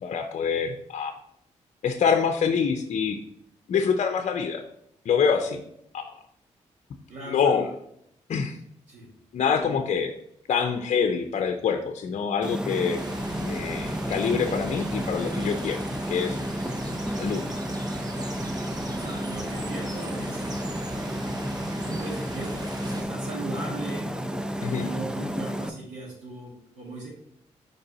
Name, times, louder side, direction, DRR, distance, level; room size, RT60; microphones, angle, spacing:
voice 1, 0.0-1.1 1.8-3.2 3.7-4.6 5.0-5.6 5.9-6.2 7.3-7.7 8.3-8.6 9.3-10.1 10.5-13.0 13.4-15.8 16.1-16.4 17.1-17.4 24.6-24.9, left 6 dB, 60° left, 5 dB, 0.6 m, -25 dB
voice 2, 7.1-7.7 8.9-9.1 9.5-9.9 18.6-20.7 21.9-24.1 24.6-27.1, right 2 dB, 75° right, -7 dB, 2.6 m, -39 dB
sound 1, 12.4-25.7, equal, 5° right, 0.6 m, -31 dB
sound 2, 13.0-23.0, right 2 dB, 30° right, 1.0 m, -41 dB
5.2 x 4.7 x 4.1 m, 0.74 s
supercardioid pair, 60°, 13 cm